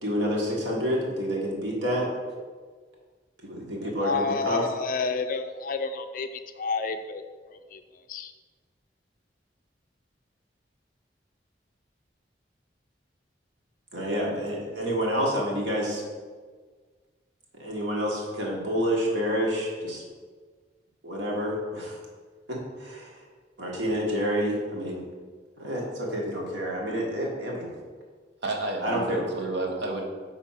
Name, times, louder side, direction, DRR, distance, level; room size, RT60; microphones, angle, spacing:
voice 1, 0.0-2.1 3.4-4.6 13.9-16.0 17.6-20.0 21.0-22.0 22.5-23.2 23.6-25.0 25.6-27.7 28.8-29.2, equal, 85° right, -3 dB, 1.6 m, -28 dB
voice 2, 4.0-6.3 6.6-7.2 7.5-7.8 8.1-8.3, left 4 dB, 50° left, 9 dB, 0.4 m, -29 dB
voice 3, 28.4-30.1, right 2 dB, 70° right, 0 dB, 1.1 m, -31 dB
4.8 x 4.0 x 5.7 m, 1.5 s
head